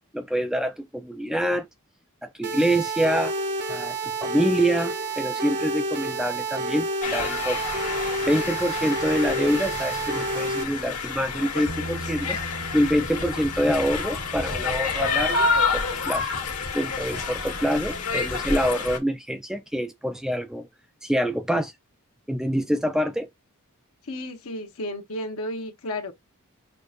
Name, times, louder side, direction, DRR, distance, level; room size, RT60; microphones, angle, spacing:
voice 1, 0.1-1.7 2.2-3.3 3.7-4.0 4.2-7.6 8.2-12.4 12.7-16.3 16.7-20.7 21.0-21.7 22.3-23.3, equal, ahead, 0.3 m, -26 dB
sound 1, 2.4-10.6, right 2 dB, 50° right, 0.7 m, -29 dB
sound 2, 7.0-19.0, left 4 dB, 90° left, 1.5 m, -29 dB
Bass guitar, 11.7-17.9, right 1 dB, 75° right, 1.6 m, -41 dB
voice 2, 24.0-26.1, left 1 dB, 65° left, 1.1 m, -33 dB
6.5 x 2.5 x 2.5 m
head